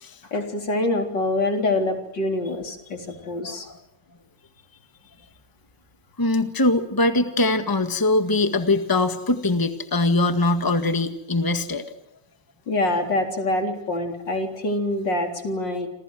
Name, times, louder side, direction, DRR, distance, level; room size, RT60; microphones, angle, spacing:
voice 1, 0.2-3.7 12.7-15.9, left 2 dB, 80° left, 4 dB, 4.6 m, -25 dB
voice 2, 3.2-3.8 6.2-11.9, left 2 dB, 10° left, 8 dB, 1.7 m, -22 dB
28.5 x 27.5 x 6.3 m, 0.81 s
omnidirectional pair, 1.9 m